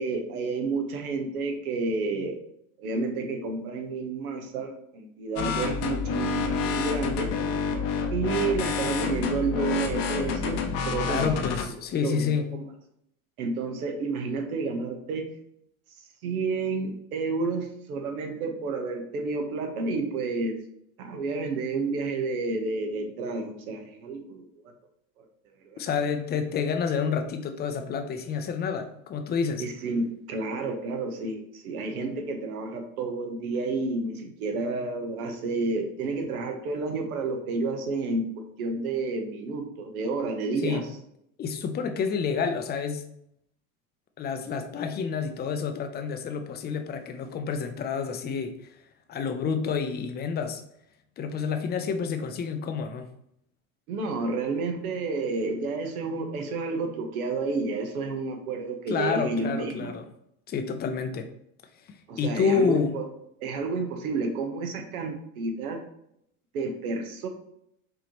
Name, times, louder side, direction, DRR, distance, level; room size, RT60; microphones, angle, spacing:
voice 1, 0.0-2.4 2.8-7.3 8.1-11.4 12.0-12.6 13.4-15.3 16.2-20.6 21.0-24.5 25.2-25.3 25.6-25.8 29.6-40.9 53.9-59.9 62.1-63.1 63.4-65.8 66.5-67.3, right 3 dB, 80° right, 5 dB, 1.0 m, -30 dB
sound 1, 5.4-11.6, left 5 dB, 55° left, 0.9 m, -28 dB
voice 2, 11.0-12.5 25.8-29.6 40.6-40.8 41.4-43.0 44.2-48.5 49.1-50.6 51.2-53.1 58.9-60.0 60.5-61.3 62.2-62.9, left 6 dB, 25° left, 7 dB, 0.5 m, -29 dB
5.1 x 2.8 x 3.0 m, 0.74 s
hypercardioid pair, 100°, 43 cm